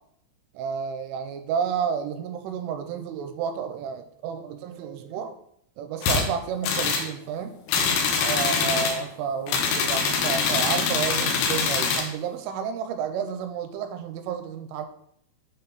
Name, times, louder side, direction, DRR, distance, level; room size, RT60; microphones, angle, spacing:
voice 1, 0.5-5.3 5.8-7.6 8.2-14.9, right 7 dB, 85° right, 7 dB, 3.1 m, -31 dB
sound 1, 6.0-6.3 6.6-7.1 7.7-9.0 9.5-12.1, left 5 dB, 85° left, 3.8 m, -24 dB
8.9 x 4.3 x 4.0 m, 0.69 s
omnidirectional pair, 5.8 m